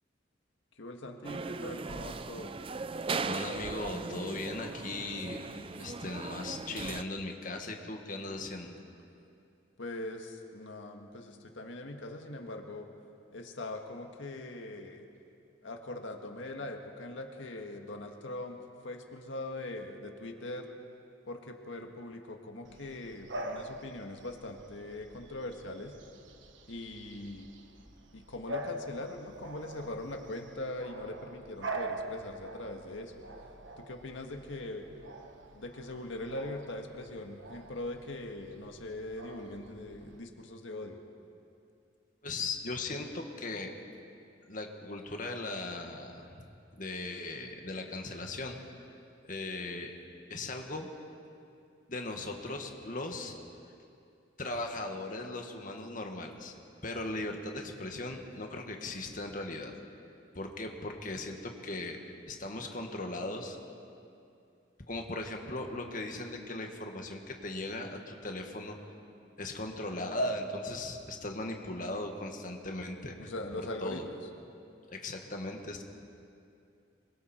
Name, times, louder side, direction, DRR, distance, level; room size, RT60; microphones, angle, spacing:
voice 1, 0.8-2.6 9.8-12.9 13.3-15.1 15.6-18.6 18.8-20.7 21.3-25.9 26.7-27.5 28.1-33.2 33.8-34.9 35.5-41.0 73.2-74.3, left 1 dB, 85° left, 3 dB, 1.8 m, -41 dB
sound 1, 1.2-7.0, right 4 dB, 30° right, 0.4 m, -38 dB
voice 2, 3.2-5.4 5.8-8.8 42.2-43.7 44.5-46.4 46.8-48.9 49.2-49.9 50.3-50.9 51.9-53.4 54.4-56.5 56.8-59.7 60.3-62.0 62.3-63.6 64.9-68.8 69.4-73.2 73.8-74.0 74.9-75.8, left 2 dB, 45° left, 3 dB, 1.9 m, -38 dB
Bark / Bird vocalization bird call bird song, 22.6-40.2, right 1 dB, 75° right, 1.3 m, -45 dB
26.5 x 22.5 x 4.5 m, 2.5 s
head